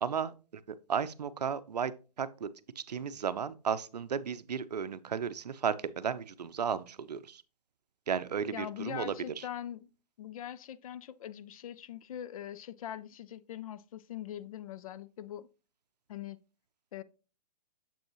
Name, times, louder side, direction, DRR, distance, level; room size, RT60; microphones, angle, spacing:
voice 1, 0.0-0.3 0.9-1.9 2.2-2.5 2.8-7.4 8.1-9.4, right 7 dB, 85° right, 0.5 m, -34 dB
voice 2, 8.5-9.9 10.2-15.5 16.1-16.4 16.9-17.0, left 11 dB, 60° left, 0.5 m, -42 dB
7.0 x 5.3 x 3.0 m
hypercardioid pair, 125°, 20 cm